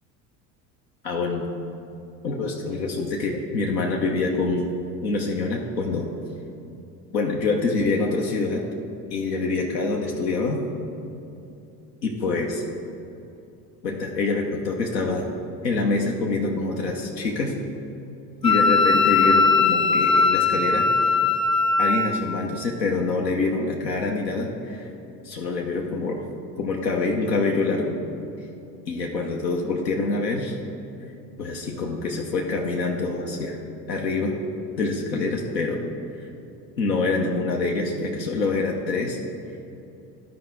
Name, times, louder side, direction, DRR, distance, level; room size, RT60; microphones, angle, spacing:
voice 1, 1.0-1.5 2.2-4.7 5.0-6.1 7.1-8.6 9.1-10.6 12.0-12.6 13.8-15.3 15.6-17.5 18.4-20.8 21.8-24.9 25.2-26.2 26.6-28.0 28.9-30.6 31.4-33.6 33.9-34.3 34.8-35.8 36.2-36.3 36.8-39.2, left 3 dB, 85° left, -1 dB, 0.8 m, -25 dB
Wind instrument woodwind instrument, 18.4-22.2, left 4 dB, 10° left, 0.4 m, -19 dB
12.5 x 4.7 x 3.7 m, 2.8 s
figure-of-eight pair, 65°, 50 cm